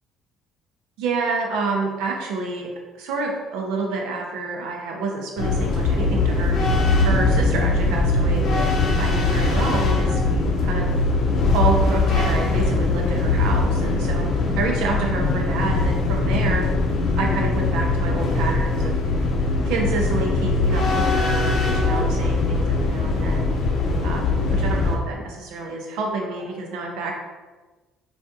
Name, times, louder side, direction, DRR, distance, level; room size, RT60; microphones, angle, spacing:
voice 1, 1.0-2.7 2.9-6.6 7.0-8.7 9.0-10.9 11.5-14.3 14.6-16.6 17.2-19.0 19.7-23.4 24.0-27.1, right 3 dB, 85° right, 1 dB, 0.6 m, -28 dB
sound 1, 5.4-25.0, left 3 dB, 60° left, 0.5 m, -21 dB
3.4 x 2.3 x 2.7 m, 1.2 s
cardioid pair, 105°, 0 cm